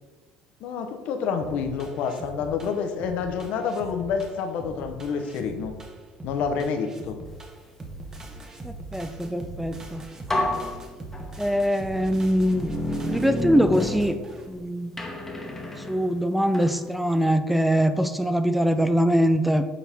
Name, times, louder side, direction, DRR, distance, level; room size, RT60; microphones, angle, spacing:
voice 1, 0.6-5.7 6.2-7.2, left 6 dB, 70° left, 6 dB, 0.8 m, -28 dB
sound 1, 1.4-14.6, right 2 dB, 25° right, 1.0 m, -41 dB
voice 2, 8.6-10.0 11.4-12.7 13.1-14.2 14.5-14.9 15.8-19.7, equal, 5° right, 10 dB, 0.4 m, -23 dB
sound 2, 9.7-9.8 10.3-11.6 12.2-14.6 15.0-16.8, left 1 dB, 10° left, 1.1 m, -30 dB
7.4 x 4.2 x 3.5 m, 1.3 s
supercardioid pair, 95°, 2 cm